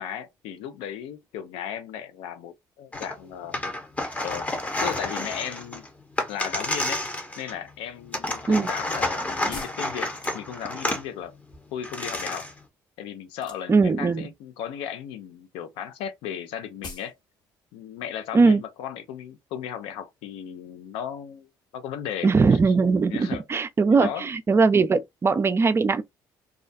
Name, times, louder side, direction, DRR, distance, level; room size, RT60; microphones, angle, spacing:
voice 1, 0.0-3.6 4.2-5.9 6.3-7.0 7.4-11.3 11.7-12.5 13.0-17.1 17.7-22.6 23.1-23.4 23.9-24.3, left 9 dB, 80° left, 0.5 m, -36 dB
sound 1, 2.9-3.1 3.5-7.7 8.1-11.0 11.5-11.6 11.8-12.6, left 1 dB, 15° left, 0.8 m, -30 dB
sound 2, 9.5-10.9 13.3-13.9 14.3-14.8 15.1-15.3 15.6-15.7 15.9-16.0 16.3-16.4 16.8-17.2 17.5-17.6, left 3 dB, 50° left, 1.1 m, -43 dB
voice 2, 13.7-14.3 18.3-18.6 22.2-26.0, right 4 dB, 30° right, 0.4 m, -20 dB
2.4 x 2.1 x 2.5 m
supercardioid pair, 70°, 9 cm